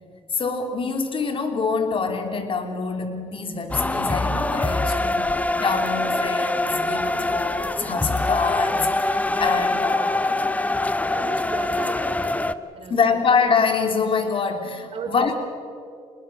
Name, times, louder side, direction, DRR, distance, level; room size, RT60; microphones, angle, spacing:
voice 1, 0.3-5.1 5.6-10.5 10.9-11.2 12.9-15.3, left 5 dB, 45° left, 6 dB, 3.3 m, -25 dB
sound 1, 3.7-12.5, left 2 dB, 10° left, 0.9 m, -24 dB
voice 2, 4.9-5.3 11.1-13.2 14.9-15.3, right 5 dB, 50° right, 3 dB, 5.0 m, -36 dB
26.0 x 21.0 x 6.5 m, 2.4 s
supercardioid pair, 80°, 12 cm